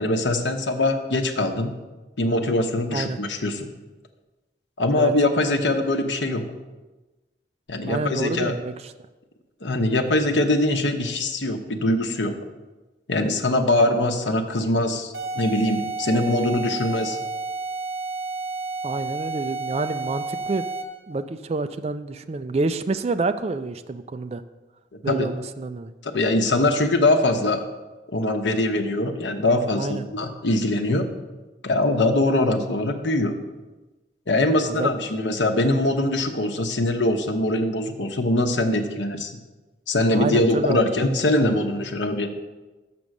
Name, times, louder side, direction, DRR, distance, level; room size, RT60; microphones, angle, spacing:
voice 1, 0.0-1.7 2.2-3.7 4.8-6.4 7.7-8.5 9.6-12.3 13.1-17.2 25.1-25.3 26.0-27.6 28.1-31.1 31.6-33.3 34.3-39.3 39.9-42.3, left 2 dB, 85° left, 5 dB, 0.9 m, -22 dB
voice 2, 7.9-8.9 18.8-20.6 21.1-24.4 25.0-25.9 29.7-30.1 34.7-34.9 40.1-40.9, right 3 dB, 35° right, 10 dB, 0.3 m, -28 dB
sound 1, 15.1-21.0, right 3 dB, 60° right, 1.6 m, -31 dB
6.9 x 6.0 x 6.4 m, 1.2 s
head